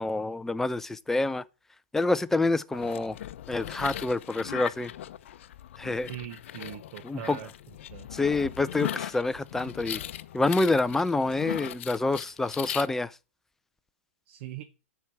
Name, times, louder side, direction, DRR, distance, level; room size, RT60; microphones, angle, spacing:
voice 1, 0.0-1.4 1.9-3.2 3.5-4.9 5.8-6.1 7.0-7.4 8.1-10.0 10.3-13.2, left 2 dB, 5° left, 0.4 m, -27 dB
sound 1, 2.7-12.9, left 11 dB, 65° left, 0.6 m, -39 dB
voice 2, 6.1-7.5 7.9-8.1 14.3-14.6, right 13 dB, 55° right, 0.9 m, -41 dB
11.5 x 4.7 x 7.0 m
hypercardioid pair, 140°, 7 cm